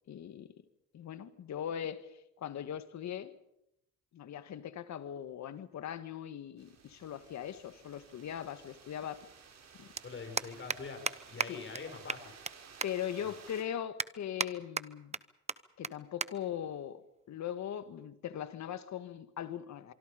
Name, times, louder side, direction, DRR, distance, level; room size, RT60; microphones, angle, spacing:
voice 1, 0.1-0.5 0.9-2.1 2.4-3.3 4.1-9.2 9.8-9.9 11.5-11.6 12.8-15.2 15.8-17.0 17.3-19.9, left 10 dB, 65° left, 1.8 m, -40 dB
sound 1, 6.6-13.6, right 6 dB, 60° right, 5.9 m, -56 dB
sound 2, 9.5-9.7 10.0-10.1 10.4-10.8 11.1-11.2 11.4-11.5 11.7-11.8 12.1-12.5 12.8-12.9 13.4-13.5 14.0-14.5 14.8-15.2 15.5-15.6 15.8-15.9 16.2-16.3 16.6-16.8 17.6-17.9, right 4 dB, 20° right, 1.0 m, -34 dB
voice 2, 10.0-12.3 13.2-13.4, left 4 dB, 40° left, 6.1 m, -44 dB
25.5 x 24.5 x 5.2 m
cardioid pair, 90°, 30 cm